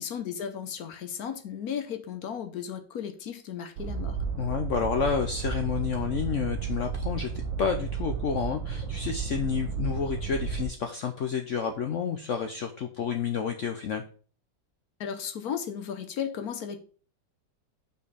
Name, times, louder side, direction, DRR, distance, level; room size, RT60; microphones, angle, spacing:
voice 1, 0.0-4.2 15.0-16.8, left 8 dB, 65° left, 8 dB, 1.1 m, -35 dB
sound 1, 3.8-10.7, right 6 dB, 60° right, 1.2 m, -33 dB
voice 2, 4.4-7.3 7.6-14.0, left 6 dB, 85° left, 6 dB, 0.6 m, -30 dB
5.4 x 4.4 x 5.0 m, 0.40 s
omnidirectional pair, 2.0 m